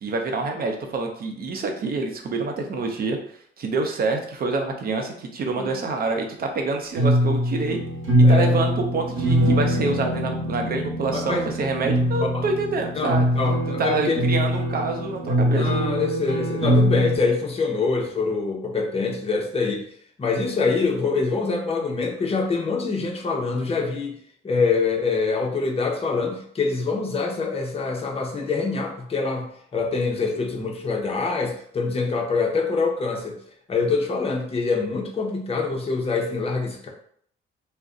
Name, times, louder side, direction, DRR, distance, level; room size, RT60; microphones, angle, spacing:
voice 1, 0.0-3.2 3.6-7.8 8.2-13.3 13.8-15.7, right 3 dB, 50° right, 3 dB, 0.6 m, -26 dB
sound 1, 7.0-17.2, equal, 80° right, 1.0 m, -22 dB
voice 2, 8.2-8.5 11.1-11.5 12.3-12.4 13.0-14.2 15.5-19.8 20.2-24.2 24.4-33.3 33.7-36.9, left 4 dB, 30° left, 1 dB, 0.7 m, -25 dB
2.4 x 2.1 x 3.6 m, 0.62 s
cardioid pair, 90°, 20 cm